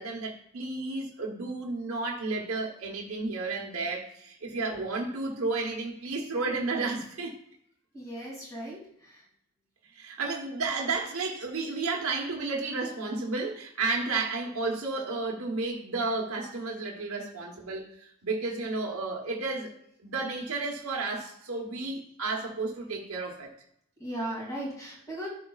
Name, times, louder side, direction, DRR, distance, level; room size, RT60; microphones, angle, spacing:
voice 1, 0.0-7.4 9.9-19.7 20.0-23.5, right 3 dB, 75° right, -1 dB, 1.1 m, -32 dB
voice 2, 7.9-9.3 24.0-25.3, right 1 dB, 15° left, -4 dB, 2.7 m, -37 dB
11.0 x 5.0 x 2.4 m, 0.70 s
head